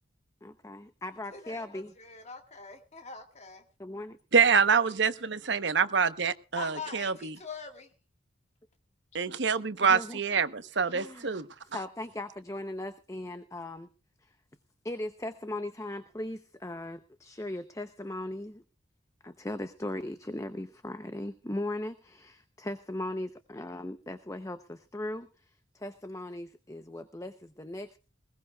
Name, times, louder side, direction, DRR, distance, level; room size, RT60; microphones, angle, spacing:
voice 1, 0.4-1.9 3.8-4.2 9.8-10.4 10.9-11.3 11.7-13.9 14.2-14.3 14.8-18.6 19.2-28.0, left 1 dB, 15° left, 10 dB, 0.7 m, -38 dB
voice 2, 1.3-3.6 6.6-7.9, left 5 dB, 35° left, 4 dB, 1.8 m, -43 dB
voice 3, 4.3-7.3 9.1-11.4, right 6 dB, 60° right, 12 dB, 0.9 m, -26 dB
20.5 x 18.0 x 2.4 m, 0.34 s
head